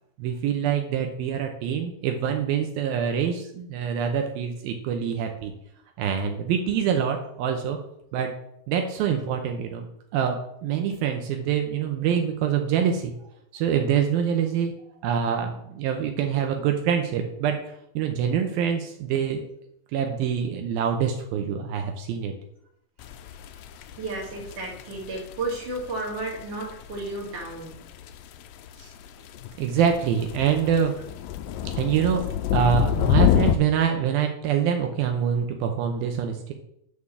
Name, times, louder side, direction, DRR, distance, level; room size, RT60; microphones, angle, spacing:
voice 1, 0.2-5.5 6.0-7.8 8.1-8.3 8.7-9.9 10.1-13.1 13.5-14.7 15.0-17.6 18.0-19.5 19.9-22.3 29.6-30.9 31.8-36.5, right 8 dB, 80° right, 4 dB, 2.8 m, -25 dB
sound 1, 23.0-33.6, left 11 dB, 80° left, 2.3 m, -28 dB
voice 2, 24.0-27.8 28.8-28.9, right 2 dB, 60° right, -2 dB, 3.7 m, -33 dB
11.0 x 4.9 x 7.0 m, 0.75 s
omnidirectional pair, 4.3 m